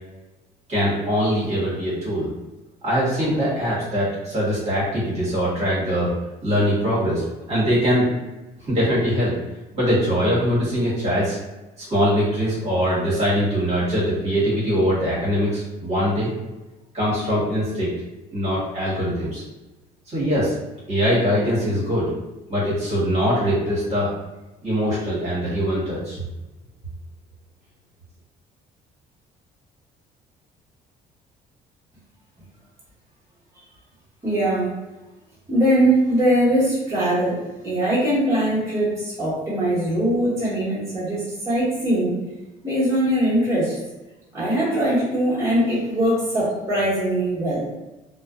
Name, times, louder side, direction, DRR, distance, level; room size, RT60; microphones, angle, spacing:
voice 1, 0.7-2.3 2.8-6.1 6.4-8.1 8.6-9.3 9.7-11.4 11.8-16.3 16.9-17.9 18.3-19.4 20.1-20.5 20.9-22.1 22.5-24.1 24.6-26.2, equal, 40° right, -8 dB, 1.2 m, -22 dB
voice 2, 34.2-34.7 35.5-37.4 37.6-42.2 42.6-43.8 44.3-47.7, right 1 dB, 15° right, -10 dB, 1.3 m, -21 dB
2.4 x 2.2 x 2.4 m, 1.1 s
cardioid pair, 110°, 17 cm